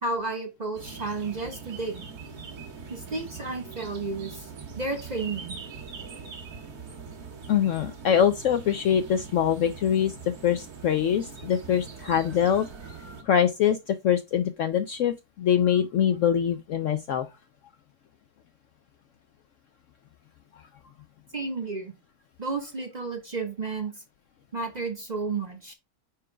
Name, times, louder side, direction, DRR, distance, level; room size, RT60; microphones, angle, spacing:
voice 1, 0.0-2.0 2.9-4.5 4.8-5.5 21.3-21.9 22.4-23.9 24.5-25.7, right 3 dB, 35° right, 0.9 m, -32 dB
sound 1, 0.7-13.2, right 5 dB, 70° right, 1.9 m, -42 dB
voice 2, 7.5-10.1 10.4-12.7 13.2-17.3, left 9 dB, 70° left, 0.8 m, -24 dB
4.9 x 4.5 x 4.4 m
omnidirectional pair, 1.7 m